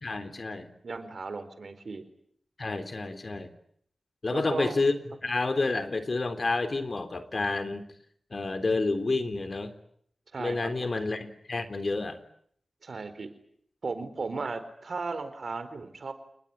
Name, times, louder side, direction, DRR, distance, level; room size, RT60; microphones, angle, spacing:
voice 1, 0.0-0.7 2.6-3.5 4.2-4.9 5.2-7.9 8.3-9.7 10.4-12.2, left 3 dB, 50° left, 11 dB, 3.5 m, -29 dB
voice 2, 0.8-2.0 4.3-4.8 10.3-10.7 12.8-13.3 13.8-16.1, right 4 dB, 65° right, 11 dB, 4.3 m, -35 dB
28.5 x 20.5 x 10.0 m, 0.67 s
cardioid pair, 60°, 0 cm